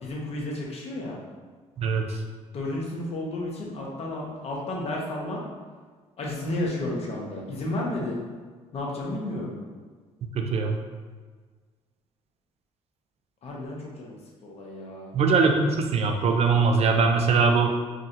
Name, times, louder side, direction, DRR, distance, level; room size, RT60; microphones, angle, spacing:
voice 1, 0.0-1.2 2.5-5.4 6.2-8.2 8.7-9.5 13.4-15.1, left 1 dB, 55° left, -2 dB, 1.0 m, -32 dB
voice 2, 1.8-2.2 10.3-10.8 15.1-17.7, right 4 dB, 55° right, 4 dB, 0.6 m, -22 dB
4.9 x 2.4 x 2.8 m, 1.5 s
supercardioid pair, 75°, 13 cm